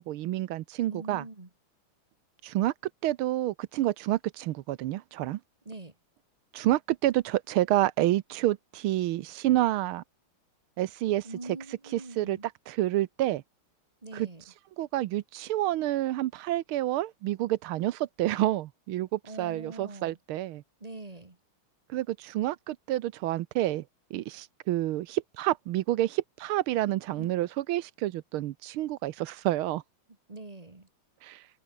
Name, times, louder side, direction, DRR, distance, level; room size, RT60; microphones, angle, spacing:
voice 1, 0.0-1.2 2.4-2.7 3.0-5.4 6.5-10.0 10.8-11.3 11.9-12.4 12.7-13.4 14.1-14.3 14.8-20.6 21.9-23.8 24.1-29.8 31.2-31.4, right 15 dB, 80° right, 1.5 m, -29 dB
voice 2, 0.8-1.5 5.7-5.9 11.2-12.5 14.0-14.4 19.2-20.2 20.8-21.4 27.1-27.3 30.3-30.9, right 2 dB, 20° right, 1.8 m, -43 dB
omnidirectional pair, 2.4 m